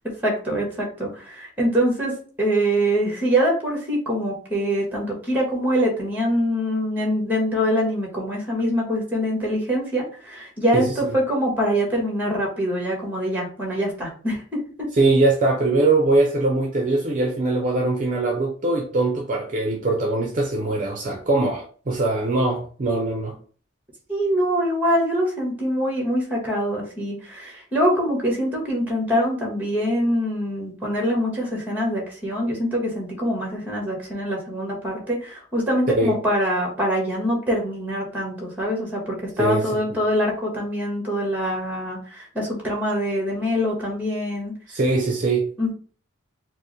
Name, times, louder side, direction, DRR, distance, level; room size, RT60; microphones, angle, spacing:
voice 1, 0.2-14.9 24.1-44.5 45.6-45.7, equal, 10° right, 1.2 m, -24 dB
voice 2, 15.0-23.4 35.9-36.1 39.4-39.7 44.7-45.5, right 2 dB, 40° right, 0.5 m, -21 dB
4.6 x 2.1 x 3.1 m
head